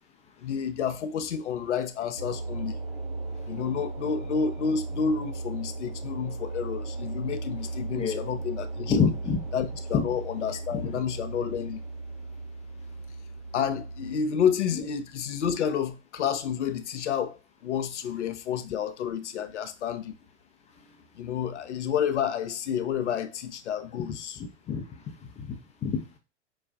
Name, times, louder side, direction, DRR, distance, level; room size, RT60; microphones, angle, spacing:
voice 1, 0.4-2.8 3.5-9.1 9.5-11.8 13.5-20.2 21.1-24.4, left 7 dB, 70° left, 0.6 m, -30 dB
sound 1, 2.2-14.2, right 3 dB, 75° right, 1.4 m, -36 dB
voice 2, 8.9-9.4 9.9-10.0 10.7-10.8 14.7-14.8 23.9-24.0 24.4-24.8 25.4-25.6 25.8-26.2, left 6 dB, 20° left, 0.5 m, -27 dB
4.7 x 2.3 x 2.2 m
figure-of-eight pair, 95°, 36 cm